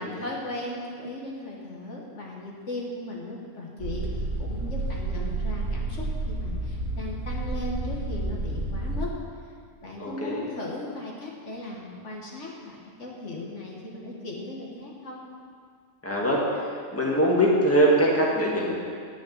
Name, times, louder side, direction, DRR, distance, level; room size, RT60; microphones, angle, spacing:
voice 1, 0.0-9.2 9.8-15.2, left 2 dB, 65° left, -2 dB, 1.8 m, -37 dB
sound 1, 3.8-9.1, right 2 dB, 75° right, 1.5 m, -30 dB
voice 2, 10.0-10.4 16.0-16.4 16.9-18.8, right 1 dB, 10° left, -4 dB, 1.6 m, -22 dB
10.5 x 6.4 x 7.4 m, 2.2 s
omnidirectional pair, 1.3 m